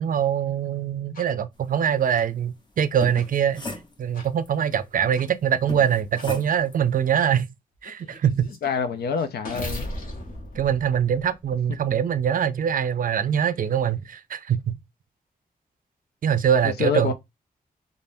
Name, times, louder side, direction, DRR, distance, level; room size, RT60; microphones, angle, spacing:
voice 1, 0.0-3.6 4.0-7.5 7.8-8.5 10.6-14.8 16.2-17.1, right 8 dB, 55° right, 0.4 m, -23 dB
sound 1, 1.1-1.3 2.1-2.3 3.1-3.3 4.1-4.3 5.1-5.3 6.1-6.3 7.1-7.3 7.8-11.7, left 1 dB, 60° left, 0.9 m, -38 dB
sound 2, 2.8-4.5 5.7-6.8, left 2 dB, 25° left, 0.9 m, -36 dB
voice 2, 8.6-9.9 16.6-17.1, left 6 dB, 90° left, 0.5 m, -26 dB
3.3 x 2.0 x 2.6 m
cardioid pair, 60°, 16 cm